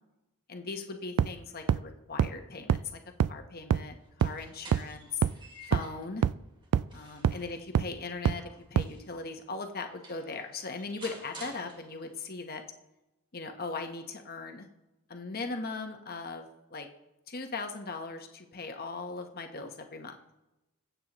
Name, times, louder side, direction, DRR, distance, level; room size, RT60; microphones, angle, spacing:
voice 1, 0.5-2.8 3.3-5.2 5.7-6.2 6.9-12.6 13.3-14.7 15.1-16.9 17.3-20.1, left 4 dB, 45° left, 5 dB, 1.0 m, -39 dB
sound 1, 1.2-1.3 1.7-1.8 2.2-2.3 2.7-2.8 3.2-3.3 3.7-3.8 4.2-4.3 4.7-4.8 5.2-5.3 5.7-5.8 6.2-6.3 6.7-6.8 7.2-7.3 7.8-7.9 8.3-8.4 8.8-8.9, right 8 dB, 85° right, 0.3 m, -24 dB
sound 2, 4.0-6.1 6.6-9.2 9.7-9.8 10.0-12.3, right 1 dB, 20° right, 2.2 m, -51 dB
22.0 x 8.2 x 3.0 m, 0.97 s
head